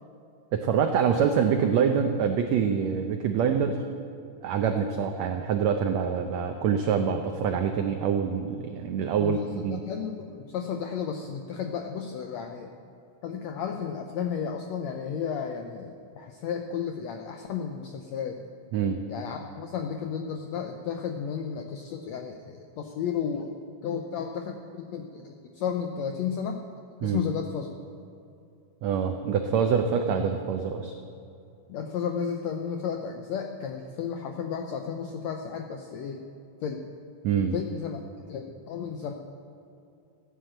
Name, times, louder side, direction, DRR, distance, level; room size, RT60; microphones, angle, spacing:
voice 1, 0.5-3.8 4.4-9.8 18.7-19.0 27.0-27.2 28.8-30.9 37.2-37.6, right 7 dB, 85° right, 5 dB, 1.5 m, -25 dB
voice 2, 9.2-12.7 13.2-18.4 19.1-23.5 23.8-26.6 27.0-27.7 31.7-36.2 36.6-36.9 37.5-39.1, left 7 dB, 80° left, 4 dB, 1.5 m, -33 dB
15.0 x 9.6 x 7.6 m, 2.6 s
omnidirectional pair, 4.0 m